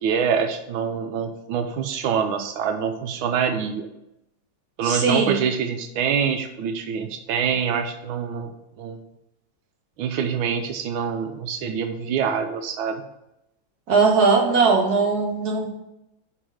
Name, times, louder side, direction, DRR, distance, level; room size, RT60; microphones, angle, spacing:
voice 1, 0.0-3.9 4.8-8.5 8.8-9.0 10.0-13.0, right 7 dB, 90° right, 6 dB, 1.5 m, -25 dB
voice 2, 4.8-5.3 13.9-15.7, right 4 dB, 50° right, -1 dB, 1.8 m, -19 dB
5.7 x 5.1 x 6.3 m, 0.86 s
omnidirectional pair, 2.2 m